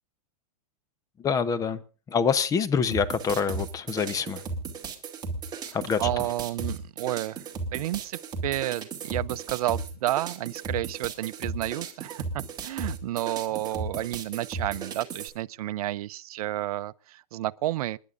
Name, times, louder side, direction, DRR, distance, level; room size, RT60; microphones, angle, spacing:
voice 1, 1.2-4.4 5.7-6.1, left 6 dB, 15° left, 0.9 m, -26 dB
sound 1, 2.9-15.3, right 4 dB, 20° right, 2.5 m, -35 dB
voice 2, 5.6-18.0, right 14 dB, 70° right, 0.6 m, -31 dB
28.0 x 11.0 x 2.5 m
supercardioid pair, 145°, 20 cm